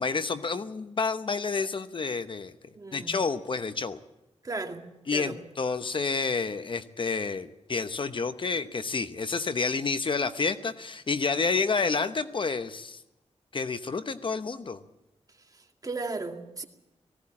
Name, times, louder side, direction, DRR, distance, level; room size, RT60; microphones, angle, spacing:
voice 1, 0.0-2.5 2.9-4.0 5.1-13.0 13.5-14.8, left 4 dB, 45° left, 11 dB, 0.9 m, -29 dB
voice 2, 2.7-3.2 4.4-4.9 5.1-5.4 15.5-16.6, right 3 dB, 30° right, 4 dB, 2.2 m, -36 dB
19.0 x 17.0 x 8.6 m, 0.93 s
wide cardioid pair, 90°, 12 cm